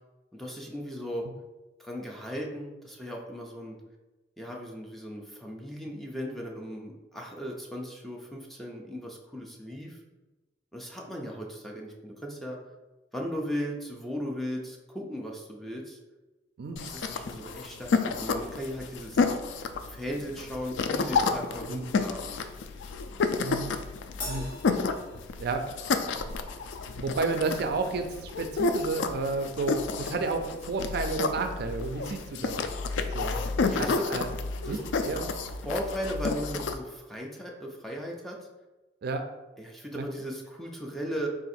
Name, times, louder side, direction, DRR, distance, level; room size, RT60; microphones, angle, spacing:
voice 1, 0.3-1.3 1.8-3.8 4.4-10.0 10.7-12.6 13.1-16.0 16.8-19.2 19.9-22.3 33.6-34.1 34.6-34.8 35.6-38.5 39.6-41.3, equal, ahead, -1 dB, 0.5 m, -37 dB
sound 1, 16.8-36.7, left 4 dB, 80° left, 0.3 m, -31 dB
voice 2, 23.4-23.7 24.3-24.5 25.4-25.7 27.0-32.6 33.1-33.4 33.8-34.3 34.7-35.3 39.0-39.2 39.9-40.0, right 3 dB, 60° right, 6 dB, 0.4 m, -31 dB
Crash cymbal, 24.2-25.9, left 1 dB, 50° left, 1.2 m, -41 dB
3.7 x 2.5 x 4.2 m, 1.1 s
head